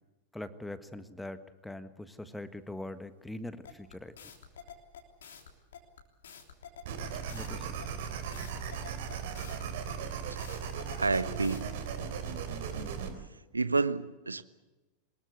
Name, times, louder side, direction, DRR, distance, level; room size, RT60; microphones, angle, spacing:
voice 1, 0.3-4.1 7.3-7.8, left 1 dB, 5° left, 12 dB, 1.6 m, -42 dB
sound 1, 3.6-11.6, left 8 dB, 65° left, 3.3 m, -49 dB
sound 2, 6.8-13.1, right 7 dB, 55° right, 3.4 m, -37 dB
voice 2, 10.9-11.7 13.5-14.4, right 3 dB, 80° right, 16 dB, 1.0 m, -29 dB
23.5 x 21.0 x 8.3 m, 1.1 s
figure-of-eight pair, 90°, 0 cm